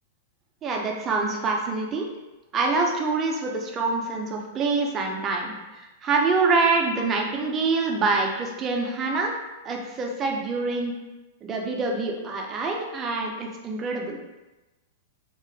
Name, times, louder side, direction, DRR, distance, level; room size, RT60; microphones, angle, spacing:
voice 1, 0.6-2.1 2.5-9.4 9.6-10.9 11.4-14.2, right 3 dB, 20° right, 0 dB, 0.4 m, -25 dB
2.3 x 2.1 x 3.3 m, 1.1 s
supercardioid pair, 160°, 0 cm